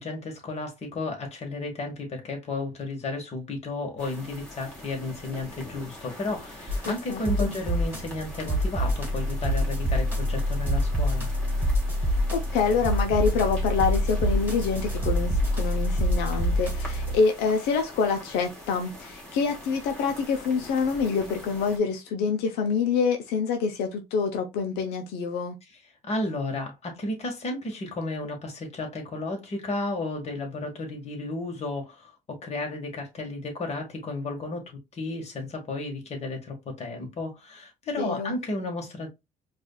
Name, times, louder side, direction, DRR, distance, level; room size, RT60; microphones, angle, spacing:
voice 1, 0.0-11.3 26.0-39.1, left 2 dB, 40° left, 1.7 m, -33 dB
sound 1, 4.0-21.8, left 1 dB, 5° left, 2.0 m, -44 dB
sound 2, 6.7-17.2, equal, 10° right, 1.5 m, -26 dB
voice 2, 6.8-7.5 12.3-25.6 38.0-38.4, left 5 dB, 90° left, 0.8 m, -26 dB
4.8 x 2.6 x 2.3 m
cardioid pair, 110°, 17 cm